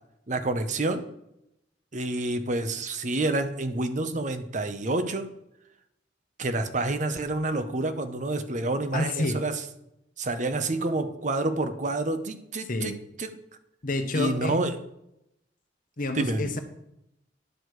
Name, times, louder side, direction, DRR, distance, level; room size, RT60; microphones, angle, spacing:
voice 1, 0.3-1.0 1.9-5.3 6.4-9.6 10.2-13.4 14.1-14.7 16.1-16.5, right 2 dB, 45° right, 9 dB, 0.8 m, -28 dB
voice 2, 8.9-9.4 12.7-12.9 13.8-14.6 16.0-16.6, left 2 dB, 50° left, 7 dB, 1.0 m, -28 dB
10.5 x 6.4 x 4.7 m, 0.82 s
head